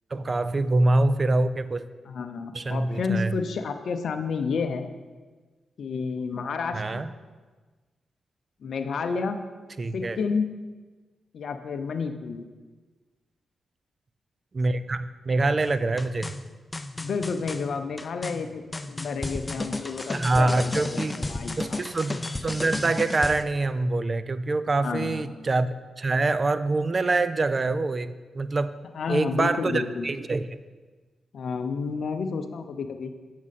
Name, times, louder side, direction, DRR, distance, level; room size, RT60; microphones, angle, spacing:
voice 1, 0.1-1.8 2.5-3.3 6.7-7.1 9.8-10.2 14.5-16.3 20.1-21.1 21.6-25.7 26.0-28.7 29.1-30.5, right 2 dB, 40° right, 14 dB, 0.4 m, -25 dB
voice 2, 2.1-4.9 5.8-7.0 8.6-9.4 9.9-10.5 11.3-12.4 16.9-21.8 24.8-25.3 28.9-30.1 31.3-33.1, left 5 dB, 70° left, 8 dB, 0.5 m, -30 dB
sound 1, 15.6-23.4, left 2 dB, 25° left, 0.4 m, -33 dB
7.4 x 6.1 x 4.1 m, 1.4 s
supercardioid pair, 55°, 0 cm